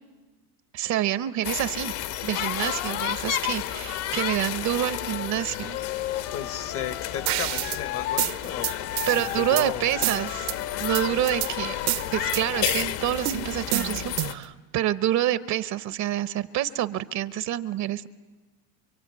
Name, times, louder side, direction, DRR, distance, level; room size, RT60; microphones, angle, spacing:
voice 1, 0.7-1.9 2.2-5.8 9.1-10.5 10.8-11.8 12.1-18.1, right 12 dB, 45° right, 15 dB, 0.8 m, -27 dB
sound 1, 1.4-14.3, left 12 dB, 65° left, 1.7 m, -32 dB
Wind instrument woodwind instrument, 4.8-8.3 8.6-12.4, left 13 dB, 80° left, 1.4 m, -36 dB
voice 2, 6.3-8.7 9.1-9.8, left 9 dB, 30° left, 14 dB, 0.9 m, -34 dB
sound 2, 7.3-7.8 8.2-9.7 10.0-10.6 10.9-11.5 11.9-12.8 13.3-14.5, right 18 dB, 70° right, 1.0 m, -28 dB
26.5 x 23.5 x 9.5 m, 1.3 s
cardioid pair, 160°, 41 cm